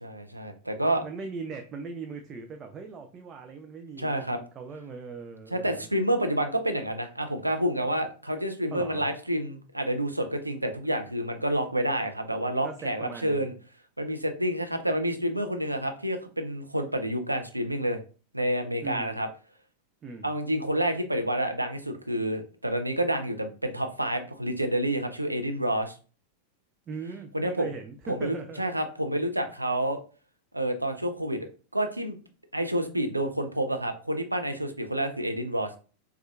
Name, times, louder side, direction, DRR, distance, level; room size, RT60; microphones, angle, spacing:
voice 1, 0.0-1.0 4.0-4.4 5.5-13.5 14.0-18.0 18.3-19.3 20.2-25.9 27.3-27.7 28.1-30.0 30.5-31.4 31.7-32.2 32.5-35.8, right 1 dB, 85° right, 5 dB, 0.5 m, -29 dB
voice 2, 1.0-5.9 8.7-9.1 12.6-13.5 18.8-19.2 20.0-20.3 26.9-28.6, right 4 dB, 25° right, 4 dB, 0.4 m, -40 dB
4.3 x 2.3 x 2.3 m, 0.36 s
figure-of-eight pair, 90°, 0 cm